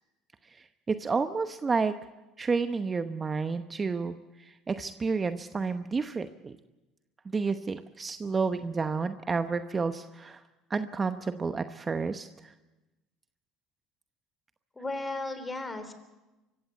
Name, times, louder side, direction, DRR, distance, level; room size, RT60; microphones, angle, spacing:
voice 1, 0.9-1.9 2.4-6.5 7.2-10.4 10.7-12.5, right 4 dB, 25° right, 9 dB, 0.9 m, -30 dB
voice 2, 14.7-15.9, left 2 dB, 15° left, 10 dB, 3.5 m, -35 dB
24.5 x 15.5 x 8.2 m, 1.1 s
supercardioid pair, 90°, 0 cm